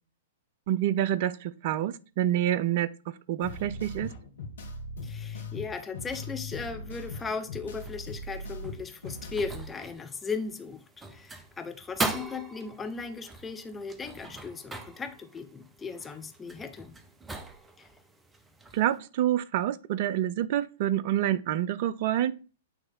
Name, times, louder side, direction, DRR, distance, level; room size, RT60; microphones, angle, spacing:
voice 1, 0.7-2.9 3.3-4.1 18.7-22.3, right 12 dB, 50° right, 0.5 m, -27 dB
sound 1, 3.4-9.6, left 2 dB, 70° left, 1.3 m, -40 dB
voice 2, 5.0-10.8 11.1-16.9 17.8-17.9, left 5 dB, 15° left, 0.9 m, -37 dB
sound 2, 7.8-19.0, right 3 dB, 10° right, 0.9 m, -41 dB
9.0 x 3.2 x 3.7 m
figure-of-eight pair, 105°, 0 cm